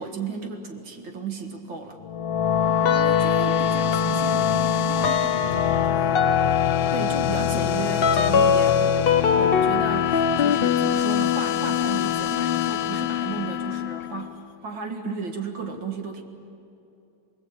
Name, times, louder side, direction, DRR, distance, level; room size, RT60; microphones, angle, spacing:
voice 1, 0.0-2.0 6.9-9.0 9.3-16.2, right 4 dB, 80° right, 3 dB, 2.5 m, -33 dB
sound 1, 2.0-14.4, left 9 dB, 85° left, 1.5 m, -24 dB
voice 2, 2.6-6.2, right 2 dB, 30° right, -1 dB, 3.1 m, -38 dB
sound 2, 2.8-3.6 3.9-14.3, left 7 dB, 65° left, 0.5 m, -25 dB
sound 3, 8.7-9.1, left 1 dB, 15° left, 1.0 m, -40 dB
29.0 x 20.5 x 8.7 m, 2.8 s
omnidirectional pair, 2.1 m